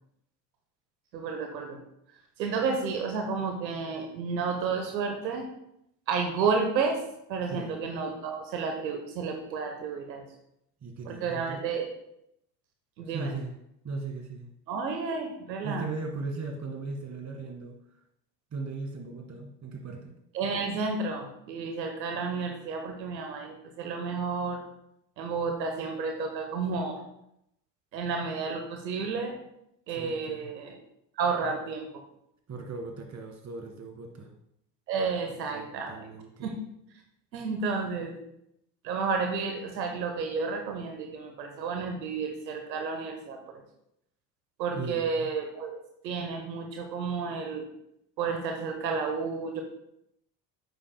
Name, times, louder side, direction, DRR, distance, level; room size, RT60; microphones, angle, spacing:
voice 1, 1.1-1.8 2.4-5.5 6.1-7.0 7.3-10.2 11.0-11.9 13.0-13.3 14.7-15.9 20.3-24.6 25.2-27.0 27.9-29.3 29.9-30.8 31.2-31.9 34.9-36.1 36.4-36.5 37.3-38.1 38.8-43.6 44.6-45.7 46.0-47.6 48.2-49.6, right 5 dB, 85° right, 4 dB, 1.1 m, -31 dB
voice 2, 10.8-11.6 13.0-13.5 13.8-14.5 15.6-17.8 18.5-20.1 29.9-30.5 32.5-34.3 35.5-36.5 44.7-45.3, right 3 dB, 35° right, 3 dB, 2.0 m, -38 dB
9.6 x 7.9 x 2.2 m, 0.79 s
hypercardioid pair, 65°, 50 cm